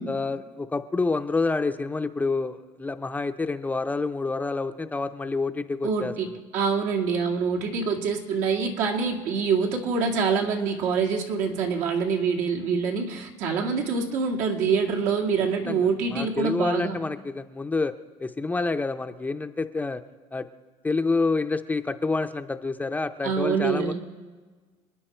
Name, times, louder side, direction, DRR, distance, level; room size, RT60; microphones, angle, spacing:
voice 1, 0.1-6.1 15.7-17.9 18.2-20.0 20.3-20.5 20.8-23.9, left 3 dB, 10° left, 9 dB, 0.5 m, -28 dB
voice 2, 5.8-17.0 23.2-23.9, right 5 dB, 80° right, 0 dB, 2.3 m, -25 dB
27.5 x 9.8 x 4.4 m, 1.4 s
cardioid pair, 135°, 13 cm